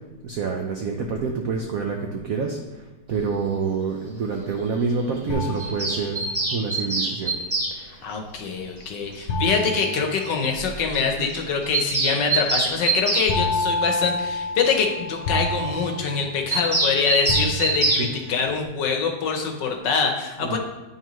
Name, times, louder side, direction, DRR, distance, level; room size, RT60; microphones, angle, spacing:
voice 1, 0.2-2.6 3.1-7.3 7.7-8.0 11.2-11.3 18.0-18.5 20.4-20.6, right 4 dB, 80° right, 2 dB, 0.7 m, -27 dB
sound 1, 5.3-6.5 9.3-10.9 13.3-16.9 17.3-18.2, left 1 dB, 85° left, 1.7 m, -28 dB
Bird vocalization bird call bird song, 5.6-7.7 9.2-9.3 9.5-9.6 9.8-9.9 10.2-10.3 10.6-10.7 10.9-11.1 11.3-13.3 16.5-18.1, right 2 dB, 35° right, 0.5 m, -24 dB
voice 2, 8.0-20.6, left 5 dB, 65° left, 3 dB, 1.3 m, -24 dB
9.4 x 5.6 x 3.0 m, 1.1 s
omnidirectional pair, 2.3 m